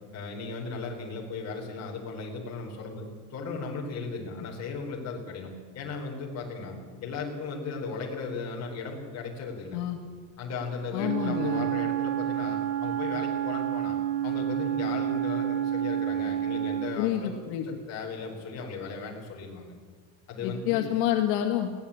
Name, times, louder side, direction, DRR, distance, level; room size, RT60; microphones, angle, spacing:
voice 1, 0.1-9.8 10.4-14.0 14.2-17.3 17.6-19.7 20.3-20.8, left 4 dB, 35° left, -1 dB, 4.6 m, -36 dB
voice 2, 10.9-11.7 17.0-17.6 20.4-21.7, left 11 dB, 80° left, 3 dB, 2.1 m, -28 dB
Wind instrument woodwind instrument, 11.0-17.0, right 11 dB, 55° right, 2.3 m, -29 dB
21.0 x 17.0 x 8.7 m, 1.5 s
cardioid pair, 165°, 47 cm